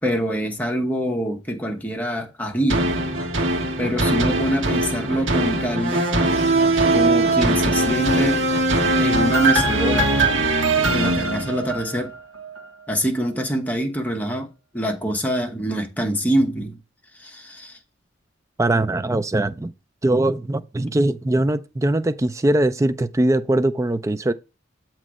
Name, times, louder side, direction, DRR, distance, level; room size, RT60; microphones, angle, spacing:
voice 1, 0.0-2.9 3.8-6.1 6.9-8.4 9.0-10.1 10.9-12.1 12.9-16.8 17.2-17.8, equal, 10° left, 1.0 m, -24 dB
sound 1, 2.7-12.1 12.6-12.7, right 2 dB, 70° right, 1.3 m, -20 dB
voice 2, 18.6-19.7 20.0-24.3, right 1 dB, 15° right, 0.4 m, -21 dB
7.5 x 3.1 x 6.1 m
head